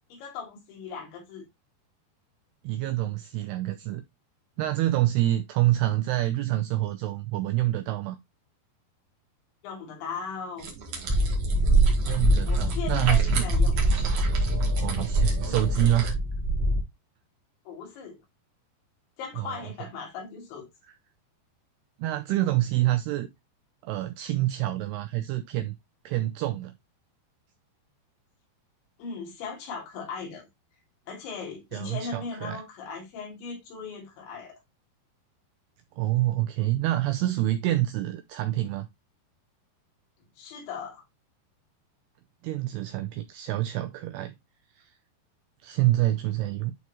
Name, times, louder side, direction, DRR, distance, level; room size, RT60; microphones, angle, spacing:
voice 1, 0.1-1.4 9.6-10.7 12.4-13.8 15.4-15.7 17.7-18.2 19.2-20.7 29.0-30.5 31.1-34.6 40.4-41.0, left 5 dB, 85° left, 5.0 m, -38 dB
voice 2, 2.6-4.0 4.6-8.2 12.1-13.5 14.8-16.1 19.4-19.7 22.0-23.3 23.8-25.8 26.1-26.7 31.7-32.6 36.0-38.9 42.4-44.3 44.8-44.9 45.6-46.8, right 15 dB, 80° right, 2.4 m, -27 dB
sound 1, 10.6-16.1, right 5 dB, 55° right, 2.8 m, -37 dB
sound 2, 11.1-16.8, right 1 dB, 15° right, 2.3 m, -24 dB
11.5 x 4.0 x 2.9 m
omnidirectional pair, 5.1 m